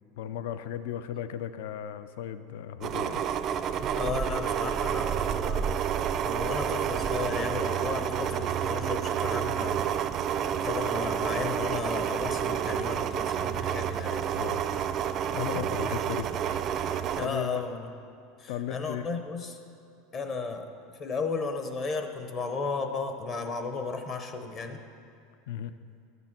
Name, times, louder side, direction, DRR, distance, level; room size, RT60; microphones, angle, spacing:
voice 1, 0.2-3.2 14.3-14.6 15.3-17.6 18.5-19.1 25.5-25.7, left 10 dB, 75° left, 12 dB, 0.4 m, -36 dB
sound 1, 2.8-17.3, right 9 dB, 35° right, 0.4 m, -29 dB
voice 2, 4.0-5.8 6.2-9.9 10.6-14.2 15.3-15.7 17.1-17.9 18.4-19.6 20.1-20.7 21.0-24.8, left 4 dB, 30° left, 6 dB, 0.7 m, -34 dB
12.0 x 6.8 x 5.8 m, 2.5 s
supercardioid pair, 150°, 0 cm